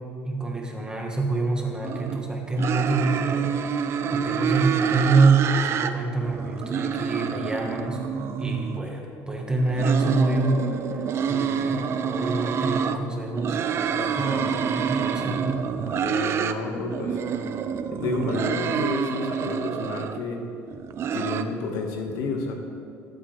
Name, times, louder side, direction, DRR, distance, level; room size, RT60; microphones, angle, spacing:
voice 1, 0.2-3.7 4.1-8.1 8.4-10.6 10.9-11.0 11.3-13.6 14.2-15.7, right 3 dB, 15° right, 0 dB, 1.7 m, -26 dB
sound 1, 1.8-2.2 2.6-5.9 6.2-8.8 9.5-13.0 13.3-16.6 16.9-20.2 20.7-21.4, right 7 dB, 45° right, 0.6 m, -27 dB
voice 2, 13.9-14.6 15.9-17.2 17.9-20.4 21.1-22.5, left 3 dB, 75° left, 2 dB, 1.9 m, -31 dB
20.5 x 8.3 x 3.5 m, 2.7 s
cardioid pair, 125°, 6 cm